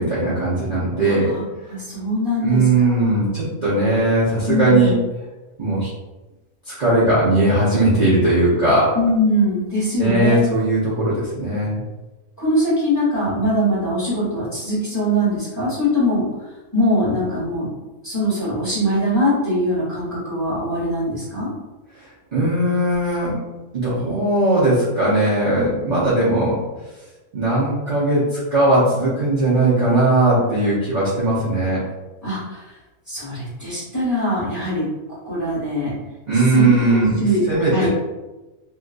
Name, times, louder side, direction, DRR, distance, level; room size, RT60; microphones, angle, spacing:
voice 1, 0.0-1.3 2.4-4.9 5.6-5.9 6.6-8.9 10.0-11.8 22.0-23.3 23.7-26.6 27.3-31.8 36.3-37.9, right 2 dB, 40° right, -10 dB, 0.8 m, -18 dB
voice 2, 1.0-1.4 1.7-2.9 4.5-4.9 8.9-10.4 12.4-16.2 16.7-17.7 18.0-21.5 32.2-32.6 33.1-34.9 35.2-35.9 36.5-37.9, equal, 15° left, -10 dB, 1.3 m, -22 dB
2.8 x 2.5 x 2.5 m, 1.1 s
omnidirectional pair, 1.5 m